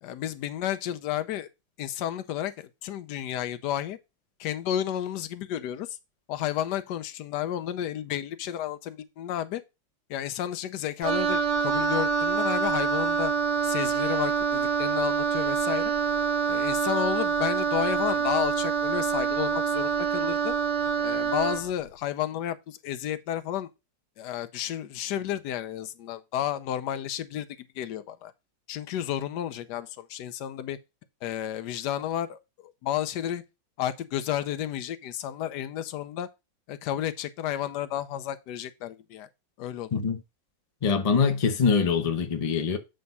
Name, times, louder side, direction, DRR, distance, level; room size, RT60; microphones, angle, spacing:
voice 1, 0.0-1.5 1.8-4.0 4.4-6.0 6.3-9.6 10.1-13.3 13.6-15.9 16.5-20.5 21.0-23.7 24.2-28.3 28.7-30.8 31.2-33.4 33.8-36.3 36.7-39.3 39.6-40.0, left 11 dB, 70° left, 1.2 m, -32 dB
Wind instrument woodwind instrument, 11.0-21.7, right 6 dB, 45° right, 0.5 m, -26 dB
voice 2, 40.8-42.8, left 5 dB, 45° left, 0.4 m, -24 dB
7.8 x 3.4 x 5.3 m
omnidirectional pair, 2.1 m